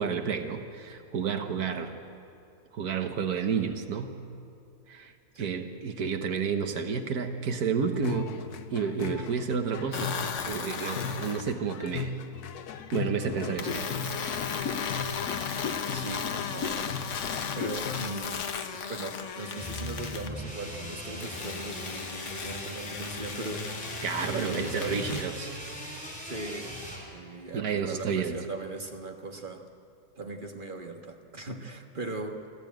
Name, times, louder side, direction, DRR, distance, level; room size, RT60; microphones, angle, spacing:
voice 1, 0.0-1.9 2.7-4.2 4.9-5.1 5.4-8.3 8.7-10.1 10.5-12.1 12.9-13.9 24.0-25.5 27.5-28.4, right 6 dB, 80° right, 7 dB, 1.6 m, -30 dB
sound 1, 7.9-18.1, left 6 dB, 80° left, 1.4 m, -37 dB
sound 2, 9.9-11.5 13.6-20.3 21.2-25.2, left 6 dB, 55° left, 1.3 m, -36 dB
voice 2, 15.9-16.9 17.3-24.0 24.3-25.2 26.2-26.8 27.1-29.7 30.2-32.5, right 2 dB, 35° right, 4 dB, 1.5 m, -39 dB
sound 3, 19.6-27.0, equal, 5° left, 4.0 m, -39 dB
24.0 x 15.0 x 9.1 m, 2.7 s
omnidirectional pair, 1.6 m